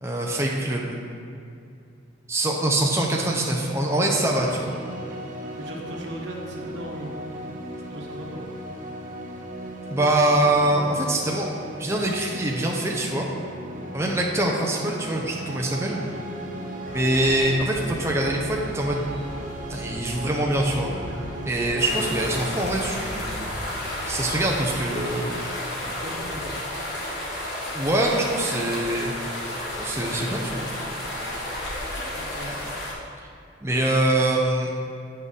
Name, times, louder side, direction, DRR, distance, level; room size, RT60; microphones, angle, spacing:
voice 1, 0.0-1.0 2.3-4.8 9.9-11.5 11.8-13.3 13.9-16.0 16.9-19.0 19.7-20.9 21.5-23.4 24.1-25.3 27.7-29.1 29.8-30.6 33.6-34.7, right 1 dB, 15° right, -2 dB, 0.6 m, -24 dB
sound 1, 4.1-22.5, right 1 dB, 45° right, 0.8 m, -36 dB
voice 2, 5.6-7.1 7.9-8.4 25.7-26.5 32.1-32.5, equal, 75° right, 0 dB, 1.1 m, -38 dB
sound 2, 16.8-24.5, left 1 dB, 85° left, 1.1 m, -39 dB
sound 3, 21.8-32.9, left 1 dB, 60° left, 1.4 m, -32 dB
8.2 x 5.4 x 3.7 m, 2.5 s
head